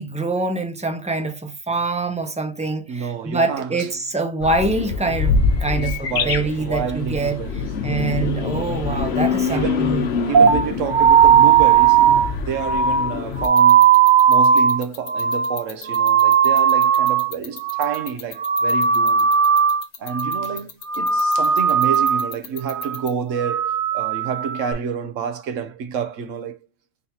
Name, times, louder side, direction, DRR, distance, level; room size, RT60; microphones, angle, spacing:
voice 1, 0.0-7.4 7.8-10.1, right 3 dB, 10° right, 0.3 m, -25 dB
voice 2, 2.9-3.9 5.8-8.2 9.5-13.9 14.3-19.4 20.0-26.6, right 7 dB, 75° right, 1.1 m, -29 dB
sound 1, 4.4-13.5, left 5 dB, 60° left, 0.9 m, -25 dB
sound 2, 10.3-17.3 17.6-18.1 18.4-19.8 20.1-20.6 20.9-22.3 22.7-23.0 23.4-24.7, right 7 dB, 50° right, 0.8 m, -17 dB
sound 3, 13.4-23.1, left 7 dB, 80° left, 1.3 m, -34 dB
3.9 x 2.8 x 4.0 m
omnidirectional pair, 1.3 m